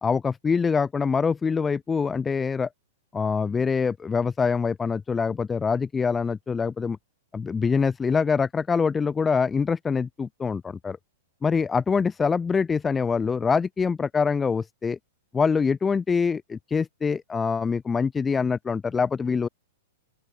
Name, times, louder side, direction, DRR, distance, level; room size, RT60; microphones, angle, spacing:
voice 1, 0.0-2.7 3.1-7.0 7.3-11.0 11.4-15.0 15.3-19.5, left 5 dB, 15° left, 0.3 m, -24 dB
open air
hypercardioid pair, 130°, 0 cm